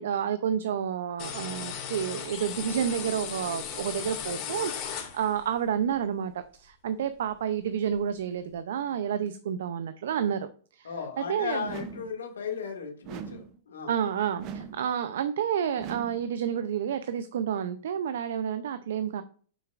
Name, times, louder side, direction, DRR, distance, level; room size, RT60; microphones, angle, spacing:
voice 1, 0.0-6.3 6.6-10.5 10.7-10.9 11.2-11.7 13.9-19.2, right 8 dB, 75° right, 11 dB, 0.6 m, -30 dB
sound 1, 1.2-5.5, left 8 dB, 40° left, 2.2 m, -36 dB
voice 2, 10.8-14.0, left 6 dB, 90° left, 2 dB, 2.2 m, -36 dB
sound 2, 11.6-12.2 13.0-13.6 14.4-14.9 15.8-16.3, right 7 dB, 40° right, 0.7 m, -40 dB
7.1 x 5.8 x 2.5 m, 0.43 s
hypercardioid pair, 125°, 0 cm